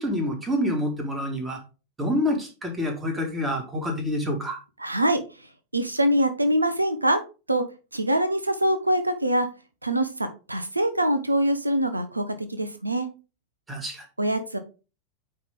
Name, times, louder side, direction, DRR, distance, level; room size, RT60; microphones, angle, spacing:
voice 1, 0.0-1.6 2.0-4.6 13.7-14.1, left 1 dB, 15° right, 3 dB, 2.0 m, -27 dB
voice 2, 4.8-5.2 5.7-7.2 7.5-7.6 7.9-9.5 9.8-12.2 12.5-13.1 14.2-14.6, right 1 dB, 85° right, 9 dB, 0.7 m, -24 dB
9.3 x 3.3 x 3.7 m, 0.32 s
figure-of-eight pair, 90°, 0 cm